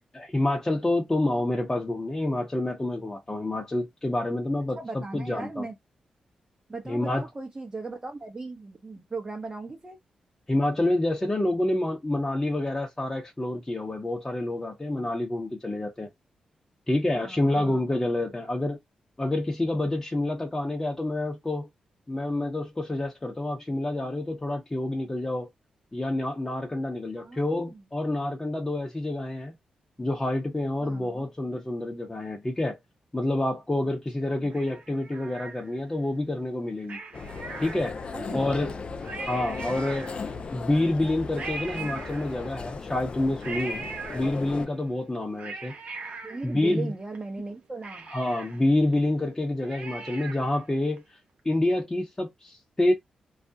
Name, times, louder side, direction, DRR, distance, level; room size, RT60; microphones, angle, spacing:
voice 1, 0.1-5.6 6.9-7.3 10.5-16.1 16.9-18.8 19.2-21.7 22.1-25.5 25.9-29.6 30.0-32.8 33.1-37.0 37.6-37.9 38.3-38.7 39.3-40.1 40.5-43.9 44.1-45.7 46.4-46.9 48.1-51.2 51.4-52.9, left 1 dB, 20° left, 0.8 m, -28 dB
voice 2, 4.8-5.8 6.7-10.0 17.1-17.8 27.2-27.8 30.8-31.2 34.3-34.6 38.1-38.6 46.2-48.1, right 3 dB, 30° right, 0.7 m, -38 dB
Cat, 34.5-36.0 36.8-38.2 38.7-38.8 39.0-40.5 41.4-42.7 43.4-44.7 45.1-47.2 47.5-47.6 47.8-50.6 51.0-51.1, right 4 dB, 75° right, 0.7 m, -40 dB
sound 1, 37.1-44.7, left 4 dB, 50° left, 0.4 m, -37 dB
2.4 x 2.0 x 2.7 m
cardioid pair, 50°, 2 cm